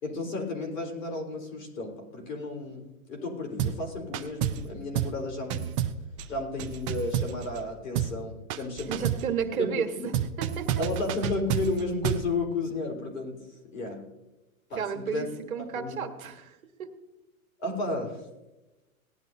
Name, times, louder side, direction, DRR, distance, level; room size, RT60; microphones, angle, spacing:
voice 1, 0.0-5.7 6.3-8.9 9.6-10.1 10.8-13.5 13.7-14.0 14.7-15.2 15.7-16.0 17.6-18.2, left 2 dB, 65° left, 1 dB, 4.3 m, -33 dB
sound 1, 3.6-3.9 4.1-4.7 5.0-5.2 5.5-7.7 8.0-8.2 8.5-9.3 10.1-12.3, right 10 dB, 25° right, 0.4 m, -30 dB
voice 2, 8.9-10.7 14.7-16.9, right 7 dB, 75° right, 6 dB, 1.5 m, -32 dB
18.0 x 11.0 x 2.7 m, 1.0 s
hypercardioid pair, 130°, 42 cm